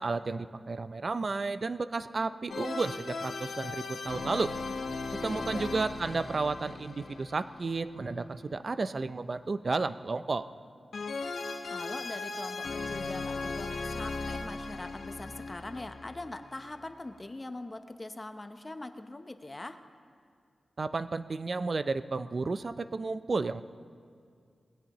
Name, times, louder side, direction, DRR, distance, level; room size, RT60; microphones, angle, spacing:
voice 1, 0.0-4.5 5.2-10.4 20.8-23.6, right 3 dB, 45° right, 13 dB, 0.4 m, -32 dB
sound 1, 2.5-8.4 10.9-16.7, left 3 dB, 75° left, 1.1 m, -38 dB
voice 2, 5.1-5.7 11.7-19.8, left 2 dB, 25° left, 8 dB, 0.8 m, -42 dB
21.5 x 17.0 x 3.0 m, 2.2 s
wide cardioid pair, 120°, 0 cm